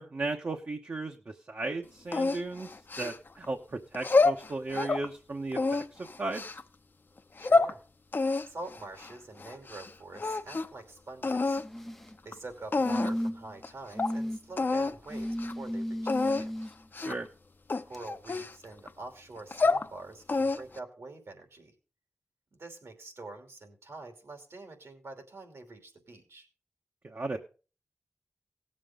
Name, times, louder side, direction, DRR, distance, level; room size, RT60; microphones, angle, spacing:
voice 1, 0.0-2.7 3.0-6.4 17.0-17.3 27.0-27.4, right 3 dB, 50° right, 3 dB, 1.1 m, -35 dB
sound 1, 2.1-3.5 3.9-5.1 5.5-6.6 7.2-7.7 8.1-9.9 10.2-10.8 11.2-11.7 12.3-12.4 12.7-13.3 13.6-13.7 14.0-14.1 14.6-14.9 15.3-15.5 16.1-16.4 16.9-17.3 17.7-18.9 19.4-19.9 20.3-20.8, left 3 dB, 45° left, 0.7 m, -28 dB
voice 2, 7.4-7.8 8.4-11.6 12.2-16.6 17.8-21.7 22.5-26.5, right 2 dB, 70° right, 5 dB, 2.8 m, -46 dB
sound 2, 11.6-12.1 12.8-13.5 14.0-14.4 15.1-16.7 17.9-18.0, equal, 5° left, 0.5 m, -34 dB
17.5 x 7.5 x 3.7 m, 0.35 s
wide cardioid pair, 100°, 5 cm